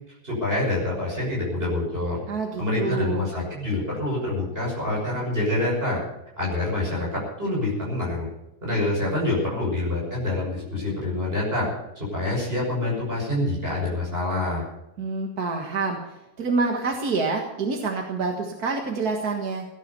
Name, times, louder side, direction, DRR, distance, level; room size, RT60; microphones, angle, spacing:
voice 1, 0.2-2.2 2.6-6.0 6.4-8.3 8.6-11.7 12.0-14.6, left 2 dB, 35° right, -4 dB, 6.3 m, -26 dB
voice 2, 2.3-3.2 15.0-19.7, right 4 dB, 65° right, 2 dB, 2.2 m, -27 dB
17.5 x 10.0 x 7.0 m, 0.94 s
omnidirectional pair, 1.7 m